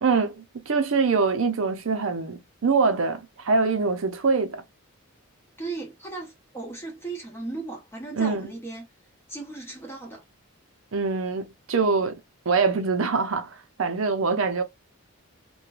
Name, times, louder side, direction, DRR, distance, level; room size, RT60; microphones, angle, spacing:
voice 1, 0.0-4.6 8.1-8.5 10.9-12.2 12.5-14.6, right 4 dB, 60° right, 0.5 m, -24 dB
voice 2, 5.6-8.9 9.3-10.2, right 3 dB, 10° left, 1.1 m, -36 dB
3.0 x 2.2 x 2.3 m
head